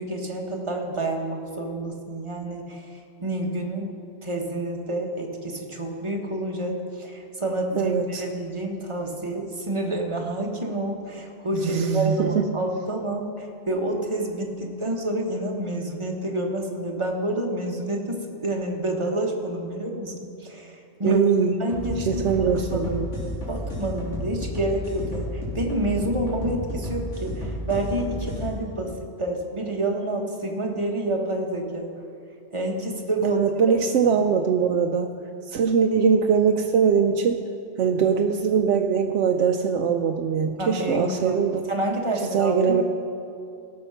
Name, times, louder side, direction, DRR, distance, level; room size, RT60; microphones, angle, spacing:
voice 1, 0.0-3.9 4.2-21.2 21.6-22.9 23.2-28.9 29.2-31.9 32.5-33.4 40.6-42.8, right 1 dB, 25° right, 1 dB, 1.3 m, -28 dB
voice 2, 7.7-8.2 11.6-12.4 21.0-21.6 22.1-23.1 33.2-35.2 35.5-37.4 37.8-41.6 42.3-42.8, right 6 dB, 90° right, 4 dB, 0.9 m, -22 dB
sound 1, 21.7-28.4, equal, 90° left, 3.5 m, -32 dB
17.5 x 6.6 x 5.7 m, 2.5 s
omnidirectional pair, 1.2 m